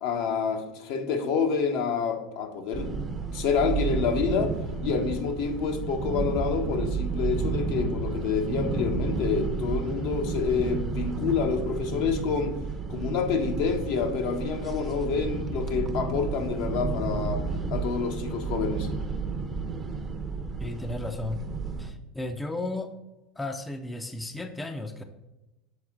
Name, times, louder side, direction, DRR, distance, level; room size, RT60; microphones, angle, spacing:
voice 1, 0.0-2.9 3.3-4.5 4.8-12.5 12.9-17.4 17.7-18.9, left 5 dB, 65° left, 5 dB, 0.9 m, -28 dB
sound 1, 2.7-21.9, right 4 dB, 25° right, 0.7 m, -31 dB
voice 2, 20.6-21.4 21.8-22.9 23.4-25.0, left 2 dB, 10° left, 7 dB, 0.5 m, -34 dB
6.4 x 4.2 x 3.6 m, 1.0 s
hypercardioid pair, 95°, 0 cm